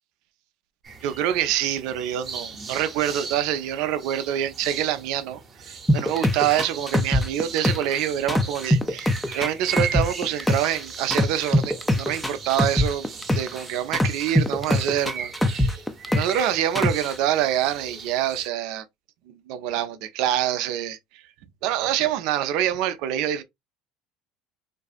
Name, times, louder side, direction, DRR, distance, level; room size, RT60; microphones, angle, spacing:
sound 1, 0.8-18.5, right 5 dB, 40° right, 0.8 m, -38 dB
voice 1, 1.0-5.4 5.7-15.8 16.1-18.8 19.3-21.0 21.6-23.4, right 11 dB, 70° right, 0.4 m, -26 dB
sound 2, 5.9-8.0 8.3-10.8 11.1-13.6 13.9-16.4 16.8-17.1, left 1 dB, 10° left, 0.4 m, -22 dB
2.6 x 2.4 x 2.3 m
hypercardioid pair, 85°, 0 cm